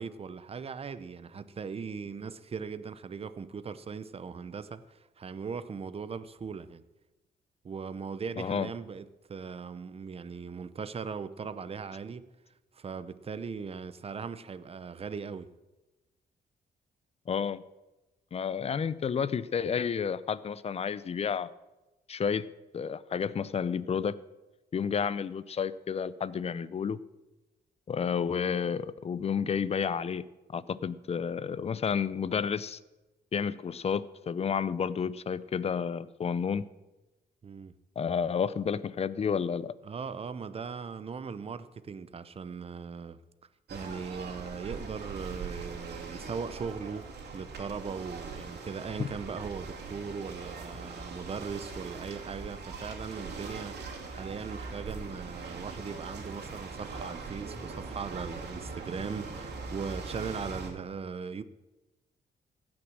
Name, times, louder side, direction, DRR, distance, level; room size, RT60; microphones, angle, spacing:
voice 1, 0.0-6.8 7.6-9.0 9.3-12.2 12.7-15.5 37.4-37.7 39.8-43.2 43.7-47.1 47.3-61.4, right 5 dB, 35° right, 0.7 m, -39 dB
voice 2, 8.4-8.7 17.3-17.6 18.3-21.5 22.1-22.5 22.7-24.2 24.7-27.0 27.9-32.8 33.3-36.7 38.0-39.7 49.0-49.1, left 6 dB, 35° left, 0.5 m, -31 dB
sound 1, 43.7-60.7, right 4 dB, 70° right, 2.7 m, -41 dB
16.0 x 6.1 x 7.4 m
cardioid pair, 110°, 18 cm